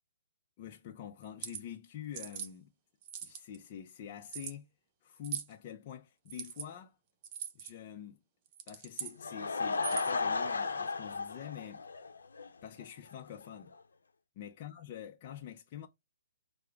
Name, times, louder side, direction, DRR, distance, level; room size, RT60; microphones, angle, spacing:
voice 1, 0.6-2.7 3.2-4.7 5.0-7.0 7.5-8.2 8.7-11.8 12.6-13.7 14.4-15.9, left 9 dB, 40° left, 0.6 m, -46 dB
sound 1, 1.2-1.6 2.1-2.5 3.0-3.6 4.3-4.5 5.2-5.5 6.3-6.7 7.2-7.7 8.5-9.2 9.7-10.2, right 9 dB, 30° right, 0.9 m, -41 dB
Laughter / Crowd, 9.0-12.5 12.8-12.9 13.4-13.5 13.7-13.8, left 4 dB, 80° left, 0.8 m, -34 dB
4.8 x 2.1 x 4.6 m
hypercardioid pair, 140°, 0 cm